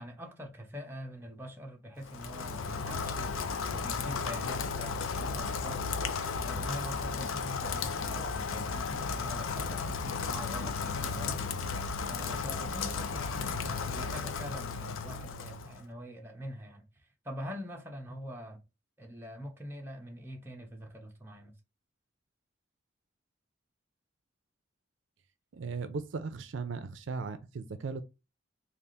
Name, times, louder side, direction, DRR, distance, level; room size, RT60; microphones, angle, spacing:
voice 1, 0.0-3.3 3.7-5.8 6.4-11.4 12.0-16.8 17.2-18.6 19.0-21.5, equal, 10° right, 0.8 m, -44 dB
Rain, 2.0-15.8, left 5 dB, 85° left, 0.4 m, -34 dB
voice 2, 25.5-28.0, right 4 dB, 70° right, 0.4 m, -37 dB
3.5 x 2.4 x 3.8 m
head